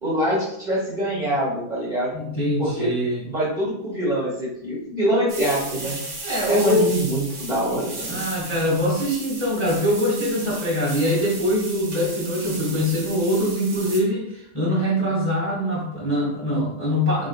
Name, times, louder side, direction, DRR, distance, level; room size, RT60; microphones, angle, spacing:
voice 1, 0.0-2.1 2.6-2.9 3.2-6.0 6.4-8.3, right 1 dB, 25° right, -6 dB, 1.3 m, -24 dB
voice 2, 2.1-3.2 6.2-6.9 8.0-17.3, equal, 10° left, -6 dB, 1.1 m, -23 dB
sound 1, 5.3-14.0, right 2 dB, 90° right, 2.0 m, -35 dB
4.4 x 3.7 x 2.3 m, 0.75 s
omnidirectional pair, 2.0 m